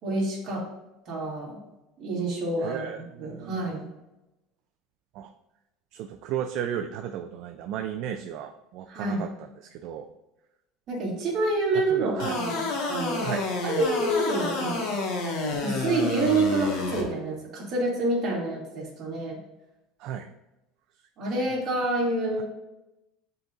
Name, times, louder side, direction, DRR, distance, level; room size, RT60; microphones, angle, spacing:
voice 1, 0.0-0.6 1.1-1.6 2.0-2.8 3.2-3.8 8.9-9.2 10.9-13.3 13.6-14.8 15.6-19.4 21.2-22.4, right 2 dB, 35° right, -5 dB, 2.2 m, -27 dB
voice 2, 2.6-3.8 5.1-5.3 5.9-10.1 11.9-12.4 13.2-13.5 20.0-20.3, right 9 dB, 50° right, 6 dB, 0.3 m, -34 dB
sound 1, 12.2-17.0, left 3 dB, 65° left, 1.3 m, -29 dB
9.9 x 3.9 x 2.4 m, 0.98 s
cardioid pair, 170°, 0 cm